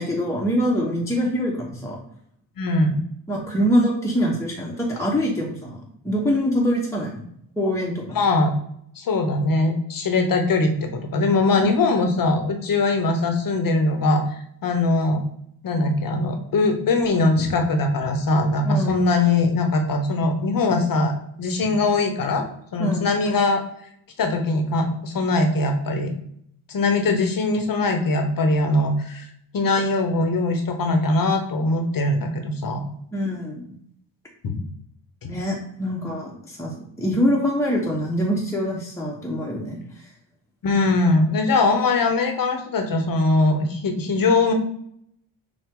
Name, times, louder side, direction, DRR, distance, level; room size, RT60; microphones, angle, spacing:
voice 1, 0.0-2.0 3.3-7.2 7.6-8.2 11.6-11.7 18.6-19.1 22.8-23.1 33.1-33.8 35.3-40.1, equal, 5° left, -2 dB, 1.0 m, -24 dB
voice 2, 2.6-3.0 8.1-8.5 9.0-14.2 14.6-15.2 15.6-22.4 22.7-23.6 24.2-26.1 26.7-29.3 29.5-32.8 34.4-34.6 35.2-35.3 40.6-44.5, left 2 dB, 50° left, 6 dB, 1.0 m, -21 dB
5.9 x 2.4 x 3.7 m, 0.69 s
cardioid pair, 80°, 44 cm